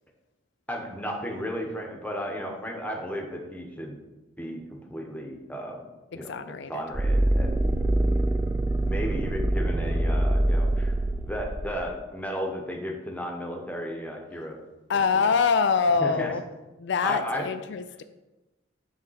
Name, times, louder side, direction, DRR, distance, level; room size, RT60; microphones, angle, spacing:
voice 1, 0.7-4.0 4.4-5.8 6.1-7.7 8.7-10.9 11.3-14.6 14.9-15.3 16.0-16.3 17.0-17.4, equal, 10° left, 0 dB, 1.1 m, -34 dB
voice 2, 6.1-6.8 14.9-16.4 16.8-18.0, left 5 dB, 65° left, 10 dB, 0.4 m, -25 dB
sound 1, 6.9-11.8, right 1 dB, 10° right, 0.3 m, -24 dB
7.8 x 3.7 x 5.7 m, 1.1 s
head